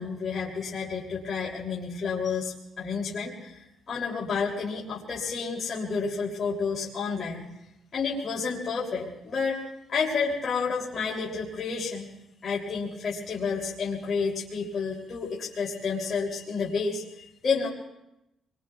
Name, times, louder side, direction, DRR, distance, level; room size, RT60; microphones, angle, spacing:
voice 1, 0.0-7.5 7.9-9.6 9.9-12.1 12.4-17.7, left 5 dB, 45° left, -5 dB, 3.0 m, -30 dB
27.0 x 22.0 x 2.4 m, 0.88 s
cardioid pair, 90°, 0 cm